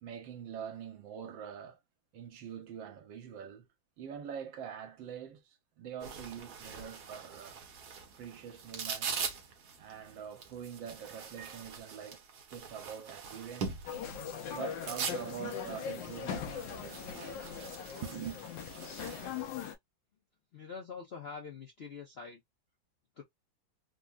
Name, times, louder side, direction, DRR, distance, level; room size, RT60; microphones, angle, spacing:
voice 1, 0.0-1.8 2.1-3.7 4.0-7.6 8.2-9.3 9.8-12.2 12.5-13.9 14.5-17.4 18.0-18.4, right 8 dB, 80° right, 1.5 m, -44 dB
sound 1, 6.0-19.4, right 5 dB, 60° right, 1.3 m, -43 dB
sound 2, 6.2-11.3, right 4 dB, 45° right, 1.1 m, -65 dB
sound 3, 13.9-19.8, left 7 dB, 75° left, 1.2 m, -40 dB
voice 2, 20.5-22.4 23.2-23.3, left 5 dB, 60° left, 0.6 m, -45 dB
3.7 x 2.1 x 2.3 m
omnidirectional pair, 2.1 m